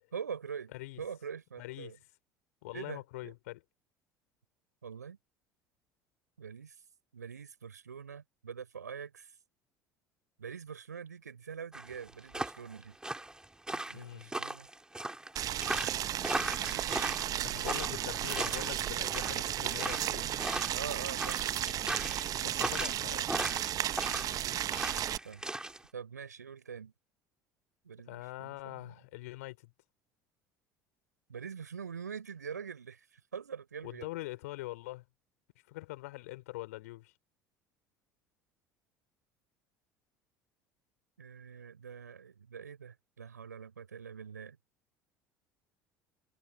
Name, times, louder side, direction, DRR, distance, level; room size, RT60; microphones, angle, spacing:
voice 1, 0.1-2.0 2.7-3.3 4.8-5.2 6.4-6.8 7.1-9.3 10.4-13.0 13.9-14.7 16.6-17.8 20.7-21.9 25.2-25.4 25.9-26.9 27.8-28.9 31.3-34.1 41.2-44.6, right 7 dB, 80° right, 7.9 m, -44 dB
voice 2, 1.6-2.0 2.6-3.6 13.7-14.3 17.4-20.4 22.4-23.6 28.1-29.7 33.8-35.0 35.7-37.1, left 19 dB, 65° left, 4.4 m, -43 dB
sound 1, 11.7-25.8, right 2 dB, 10° right, 4.0 m, -38 dB
Boiling, 15.4-25.2, right 12 dB, 40° right, 1.4 m, -34 dB
figure-of-eight pair, 65°, 9 cm